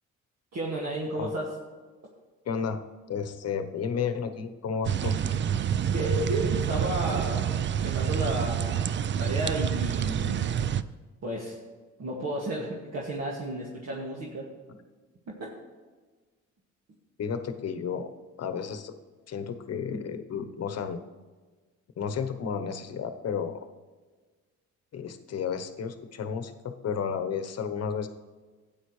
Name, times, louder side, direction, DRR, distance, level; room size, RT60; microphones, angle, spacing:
voice 1, 0.5-1.5 5.9-10.4 11.2-11.6 12.0-14.5 15.3-15.4, right 1 dB, 60° right, -4 dB, 2.0 m, -33 dB
voice 2, 2.5-2.8 3.1-5.3 17.2-18.1 18.4-18.9 19.3-21.0 22.0-23.6 24.9-28.1, left 6 dB, 55° left, 8 dB, 1.0 m, -32 dB
sound 1, 4.8-10.8, right 9 dB, 40° right, 0.4 m, -28 dB
13.0 x 9.1 x 3.2 m, 1.4 s
cardioid pair, 90°, 30 cm